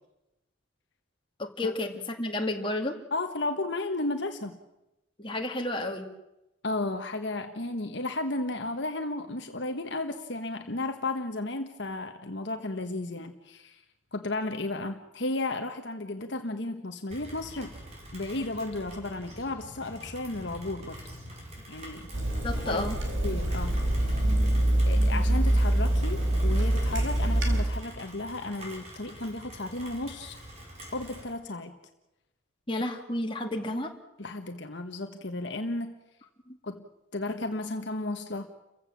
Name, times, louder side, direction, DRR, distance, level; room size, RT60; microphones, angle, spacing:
voice 1, 1.4-3.0 5.2-6.1 22.4-23.0 32.7-33.9 36.5-36.6, left 1 dB, 25° left, 3 dB, 2.2 m, -31 dB
voice 2, 3.1-4.6 6.6-13.8 14.1-17.7 18.1-21.0 21.7-22.1 22.6-22.8 23.2-24.1 24.9-30.4 30.9-31.7 34.2-35.9 36.6-36.9 37.1-38.5, left 2 dB, 60° left, 6 dB, 1.3 m, -34 dB
Rain, 17.1-31.3, equal, 30° right, 5.4 m, -45 dB
Water tap faucet / Sink (filling or washing), 22.1-27.6, right 1 dB, 70° right, 4.5 m, -25 dB
29.5 x 15.5 x 7.4 m, 0.93 s
head